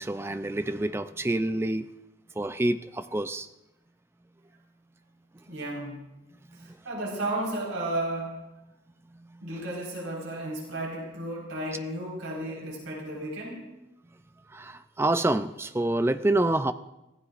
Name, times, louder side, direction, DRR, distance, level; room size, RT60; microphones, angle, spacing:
voice 1, 0.0-1.9 2.4-3.5 6.6-6.7 9.1-9.4 14.5-16.7, right 1 dB, 10° right, 11 dB, 0.4 m, -27 dB
voice 2, 5.5-6.0 6.5-8.4 9.4-13.7, right 1 dB, 85° right, -2 dB, 4.6 m, -33 dB
24.5 x 16.5 x 2.5 m, 0.95 s
head